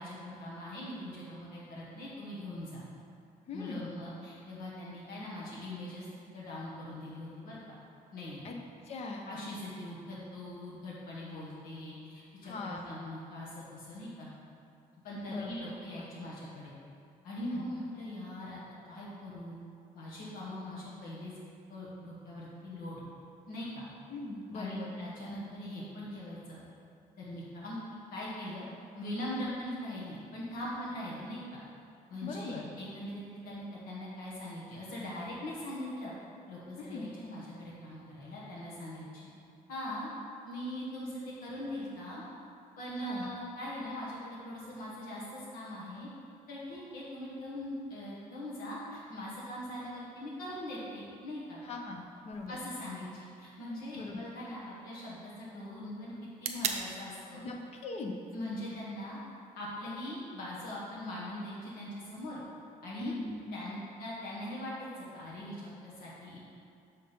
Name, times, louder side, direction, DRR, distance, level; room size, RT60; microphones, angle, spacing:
voice 1, 0.0-2.8 3.5-6.1 6.3-7.8 8.1-8.4 9.3-14.3 15.0-16.7 17.2-18.6 18.8-19.6 19.9-21.3 21.7-23.0 23.5-23.8 24.5-26.6 27.2-27.8 28.1-28.6 28.9-31.6 32.1-36.1 36.5-39.3 39.7-40.1 40.4-42.2 42.8-46.1 46.5-51.6 52.5-56.1 56.4-57.4 58.3-59.2 59.5-62.4 62.8-63.1 63.5-66.4, left 1 dB, 85° left, -6 dB, 1.5 m, -41 dB
voice 2, 3.5-3.9 8.4-8.6 8.8-9.3 12.4-12.9 15.3-15.7 17.4-17.7 24.1-25.0 29.3-29.5 32.2-32.6 36.8-37.0 43.0-43.4 51.6-52.6 53.9-54.2 57.3-58.2 63.0-63.6, left 3 dB, 45° left, 2 dB, 0.8 m, -40 dB
sound 1, 52.3-60.3, right 6 dB, 50° right, 0.5 m, -44 dB
6.5 x 4.2 x 5.1 m, 2.5 s
cardioid pair, 155°, 14 cm